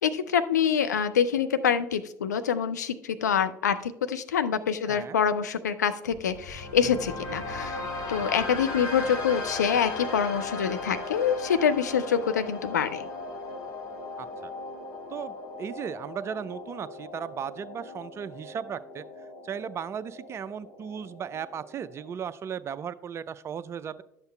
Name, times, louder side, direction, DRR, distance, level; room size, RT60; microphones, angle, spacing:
voice 1, 0.0-7.8 8.1-13.1, left 7 dB, 80° left, 11 dB, 0.5 m, -26 dB
voice 2, 4.9-5.2 14.2-14.5 15.1-19.0 19.4-24.0, right 8 dB, 30° right, 14 dB, 0.4 m, -36 dB
sound 1, 6.1-22.1, left 3 dB, 50° left, 1.3 m, -38 dB
11.5 x 8.0 x 2.2 m, 0.80 s
figure-of-eight pair, 70°, 9 cm